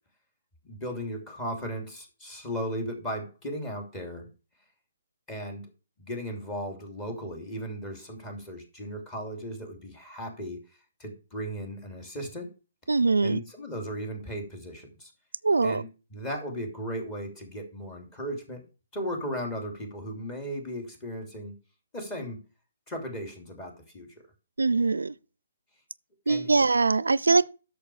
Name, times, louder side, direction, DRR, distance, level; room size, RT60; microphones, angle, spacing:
voice 1, 0.6-4.3 5.3-5.7 6.0-10.6 11.0-12.5 13.2-15.1 15.6-18.6 18.9-21.5 21.9-22.4 22.9-24.1 26.3-26.5, equal, 25° left, 3.0 m, -36 dB
voice 2, 12.9-13.4 15.4-15.8 24.6-25.1 26.3-27.5, right 3 dB, 85° right, 0.4 m, -22 dB
8.8 x 6.7 x 4.9 m
hypercardioid pair, 140°, 0 cm